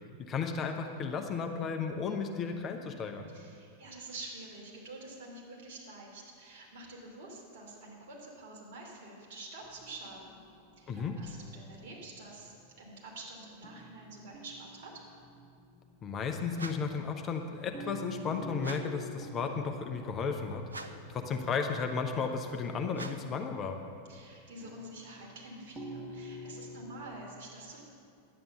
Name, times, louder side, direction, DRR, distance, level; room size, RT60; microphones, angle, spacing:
voice 1, 0.2-3.3 10.9-11.2 16.0-20.7 21.1-23.8, left 5 dB, 25° left, 5 dB, 0.8 m, -34 dB
voice 2, 3.3-10.4 10.8-15.0 24.1-27.8, right 2 dB, 50° right, -2 dB, 3.0 m, -47 dB
sound 1, 9.6-13.2 13.6-16.9 17.7-23.8 24.6-27.2, right 1 dB, ahead, 1.4 m, -49 dB
sound 2, 16.5-17.0 18.6-19.1 20.7-21.2 22.9-23.4, right 3 dB, 75° right, 0.6 m, -44 dB
11.0 x 9.0 x 6.7 m, 2.3 s
figure-of-eight pair, 90°, 0 cm